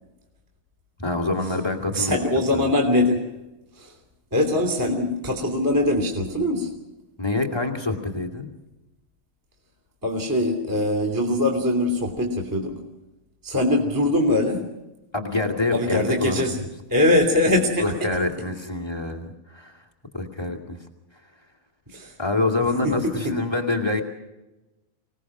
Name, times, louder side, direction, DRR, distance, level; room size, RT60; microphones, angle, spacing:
voice 1, 1.0-2.2 2.5-2.7 7.2-8.5 15.1-16.5 17.8-19.8 20.1-20.8 22.2-24.0, left 2 dB, 10° left, 2 dB, 1.2 m, -26 dB
voice 2, 1.9-3.3 3.7-4.0 4.3-6.7 10.0-12.8 13.4-14.7 15.7-16.6 16.9-18.1 21.9-22.2 22.8-23.4, left 1 dB, 5° right, 2 dB, 2.2 m, -22 dB
26.0 x 19.0 x 6.1 m, 1.0 s
omnidirectional pair, 4.4 m